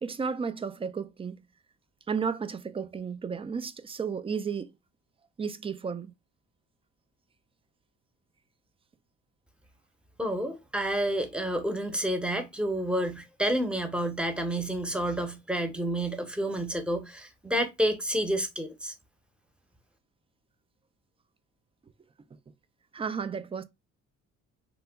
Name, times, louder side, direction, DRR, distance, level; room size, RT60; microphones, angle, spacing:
voice 1, 0.0-1.4 2.1-4.7 5.4-6.1 22.9-23.6, right 6 dB, 20° right, 0.3 m, -33 dB
voice 2, 10.2-18.9, right 1 dB, 5° right, 0.7 m, -29 dB
2.9 x 2.2 x 3.4 m
cardioid pair, 90°, 30 cm